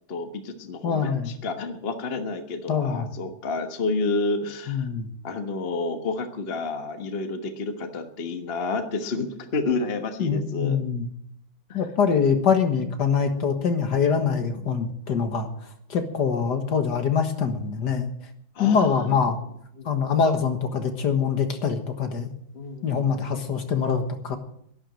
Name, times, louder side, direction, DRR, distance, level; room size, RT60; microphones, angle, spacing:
voice 1, 0.1-4.9 5.2-10.8 11.7-11.8 14.5-14.7 18.5-19.0 19.8-20.1 22.5-23.2, left 3 dB, 35° left, 6 dB, 1.2 m, -30 dB
voice 2, 0.8-1.3 2.7-3.1 4.7-5.1 10.2-11.1 11.7-15.5 15.9-18.1 18.6-19.4 19.9-22.3 22.8-24.4, left 6 dB, 55° left, 6 dB, 1.9 m, -24 dB
12.5 x 11.5 x 7.7 m, 0.69 s
omnidirectional pair, 2.2 m